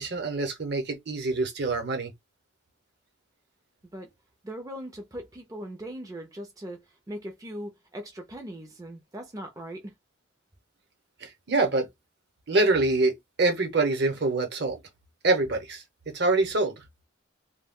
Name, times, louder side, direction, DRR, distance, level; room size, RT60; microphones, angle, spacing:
voice 1, 0.0-2.1 11.2-11.9 12.5-14.8 15.2-15.8 16.1-16.7, right 2 dB, 55° right, 0.9 m, -25 dB
voice 2, 4.4-6.8 7.1-9.9, equal, 15° right, 0.5 m, -39 dB
2.3 x 2.1 x 3.6 m
head